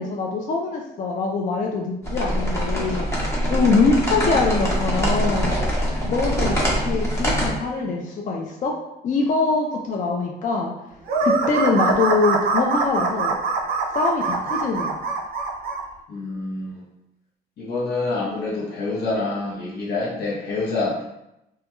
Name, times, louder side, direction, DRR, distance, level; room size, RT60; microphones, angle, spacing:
voice 1, 0.0-3.1 3.5-5.5 6.1-6.6 6.8-8.7 9.0-10.7 11.2-13.3 13.9-14.9, left 3 dB, 50° left, 0 dB, 0.4 m, -23 dB
sound 1, 2.0-7.5, equal, 15° left, 0.8 m, -23 dB
sound 2, 11.1-15.8, right 4 dB, 65° right, 0.5 m, -23 dB
voice 2, 16.1-16.8 17.6-21.0, left 3 dB, 70° left, -6 dB, 0.8 m, -26 dB
2.2 x 2.2 x 2.9 m, 0.87 s
cardioid pair, 95°, 17 cm